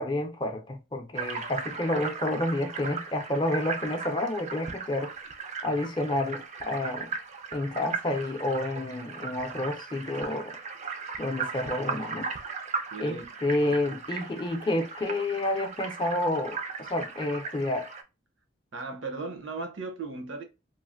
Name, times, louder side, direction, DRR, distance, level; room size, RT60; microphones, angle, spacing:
voice 1, 0.0-5.1 5.6-7.1 7.5-10.6 11.2-12.3 13.0-17.9, left 1 dB, 25° left, 0.4 m, -29 dB
sound 1, 1.1-18.0, right 5 dB, 35° right, 0.4 m, -37 dB
voice 2, 12.9-13.3 18.7-20.4, right 3 dB, 70° right, 0.7 m, -37 dB
3.1 x 2.5 x 2.5 m
head